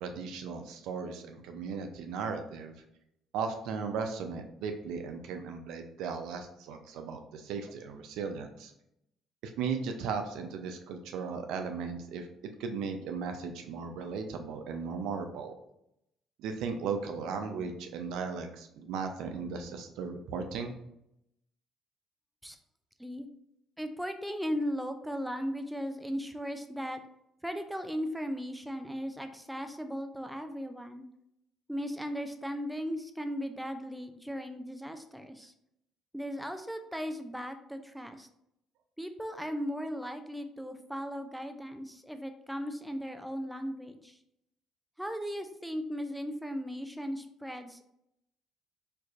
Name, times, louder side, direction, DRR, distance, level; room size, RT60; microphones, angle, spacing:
voice 1, 0.0-2.7 3.3-8.7 9.6-12.3 12.6-15.5 16.4-20.7, right 5 dB, 80° right, 5 dB, 0.4 m, -36 dB
voice 2, 23.8-27.0 27.4-31.1 31.7-35.5 36.1-38.3 39.0-44.2 45.0-47.9, equal, 5° right, 7 dB, 0.4 m, -37 dB
4.4 x 2.5 x 2.4 m, 0.79 s
supercardioid pair, 80°, 0 cm